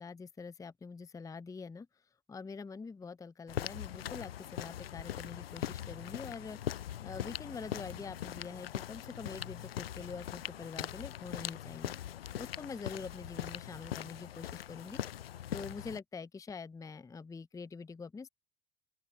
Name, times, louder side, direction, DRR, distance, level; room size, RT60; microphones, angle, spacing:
voice 1, 0.0-1.9 2.3-6.6 7.0-11.9 12.4-15.0 15.5-18.3, left 4 dB, 10° left, 0.6 m, -45 dB
sound 1, 3.5-16.0, left 11 dB, 85° left, 0.8 m, -41 dB
open air
hypercardioid pair, 70°, 29 cm